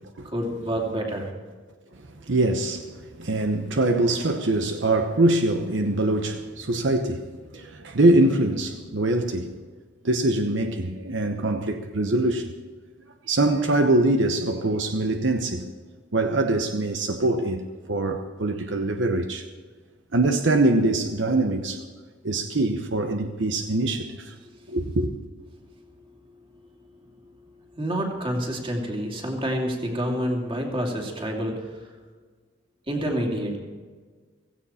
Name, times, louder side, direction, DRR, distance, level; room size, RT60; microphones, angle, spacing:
voice 1, 0.2-1.3 27.8-31.8 32.9-33.6, equal, 30° right, 2.6 m, -28 dB
voice 2, 2.3-2.9 3.2-7.3 7.5-9.5 10.0-12.5 13.3-15.7 16.1-19.4 20.1-21.8 22.2-24.4 24.7-25.1, right 2 dB, 70° right, 1.0 m, -23 dB
16.5 x 16.0 x 4.3 m
head